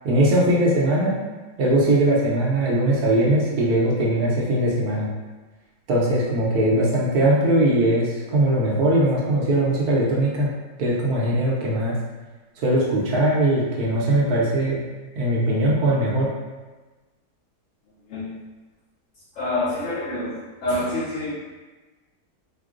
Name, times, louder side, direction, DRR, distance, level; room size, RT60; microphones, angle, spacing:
voice 1, 0.0-1.2 1.6-5.1 5.9-10.5 10.8-12.0 12.6-14.8 15.2-16.3, right 1 dB, 70° right, -4 dB, 1.2 m, -20 dB
voice 2, 19.4-20.3 20.6-21.3, left 1 dB, 65° left, -6 dB, 0.8 m, -26 dB
4.4 x 2.0 x 2.4 m, 1.2 s
omnidirectional pair, 1.7 m